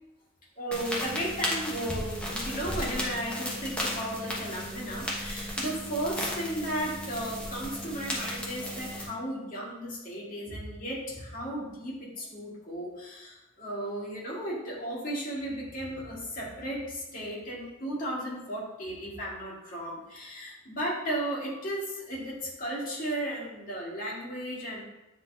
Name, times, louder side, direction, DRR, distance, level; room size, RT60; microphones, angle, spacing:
voice 1, 0.6-24.8, right 1 dB, 45° left, -5 dB, 2.0 m, -35 dB
sound 1, 0.7-9.0, equal, 5° left, 1.2 m, -35 dB
9.2 x 3.9 x 2.8 m, 0.97 s
head